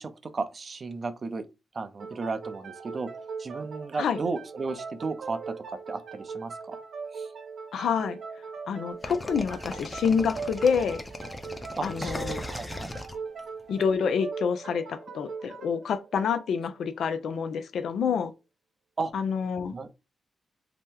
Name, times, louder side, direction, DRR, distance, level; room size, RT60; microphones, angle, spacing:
voice 1, 0.0-1.5 1.7-3.1 3.4-6.8 7.1-7.3 11.8-13.0 19.0-19.1 19.7-19.9, right 4 dB, 50° right, 0.5 m, -34 dB
sound 1, 2.0-17.3, right 5 dB, 70° right, 0.9 m, -40 dB
voice 2, 7.7-8.2 8.7-11.0 11.8-12.4 13.7-18.3 19.1-19.7, left 6 dB, 75° left, 0.3 m, -27 dB
sound 2, 9.0-13.8, left 1 dB, 25° left, 0.6 m, -38 dB
2.8 x 2.1 x 3.5 m
supercardioid pair, 50°, 0 cm